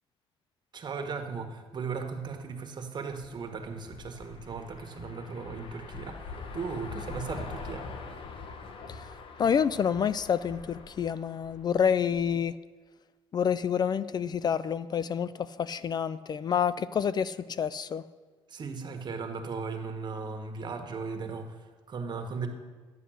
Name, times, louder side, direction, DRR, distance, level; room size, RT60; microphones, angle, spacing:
voice 1, 0.7-7.9 18.5-22.5, right 4 dB, 45° right, 5 dB, 1.7 m, -37 dB
sound 1, 3.1-12.4, left 4 dB, 55° left, 1.2 m, -44 dB
voice 2, 8.9-12.6 13.3-18.0, left 7 dB, 40° left, 17 dB, 0.4 m, -28 dB
11.5 x 8.1 x 6.5 m, 1.4 s
cardioid pair, 85°, 11 cm